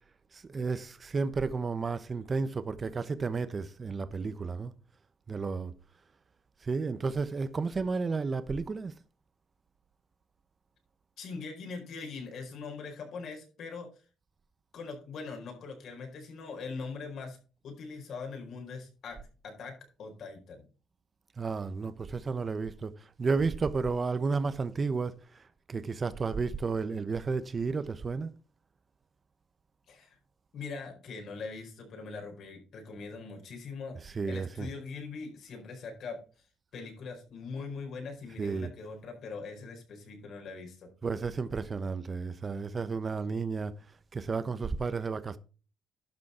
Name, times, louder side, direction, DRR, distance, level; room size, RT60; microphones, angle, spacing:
voice 1, 0.3-4.7 5.3-5.7 6.6-8.9 21.4-22.9 23.2-28.3 34.0-34.7 38.4-38.7 41.0-43.8 44.1-45.4, right 4 dB, 35° right, 1.0 m, -32 dB
voice 2, 11.2-13.9 14.7-17.4 17.6-19.2 19.4-20.7 29.9-30.2 30.5-36.5 36.7-40.9, left 4 dB, 70° left, 4.5 m, -42 dB
12.0 x 6.2 x 4.4 m
cardioid pair, 90°, 0 cm